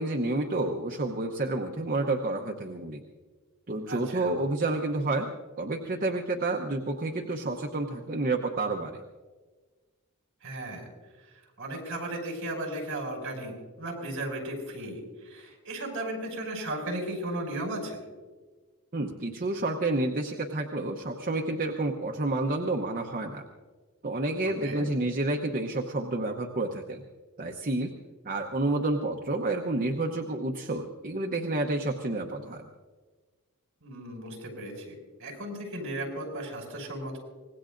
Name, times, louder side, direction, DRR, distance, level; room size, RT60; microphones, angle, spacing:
voice 1, 0.0-3.0 3.7-5.3 5.6-9.0 18.9-23.5 24.0-27.0 27.4-27.9 28.2-32.6, right 2 dB, 40° right, 2 dB, 0.9 m, -29 dB
voice 2, 3.9-4.3 10.4-10.8 11.6-18.0 24.6-24.9 33.8-34.9 35.2-37.2, right 1 dB, 60° right, -1 dB, 5.4 m, -35 dB
25.0 x 19.5 x 2.6 m, 1.4 s
head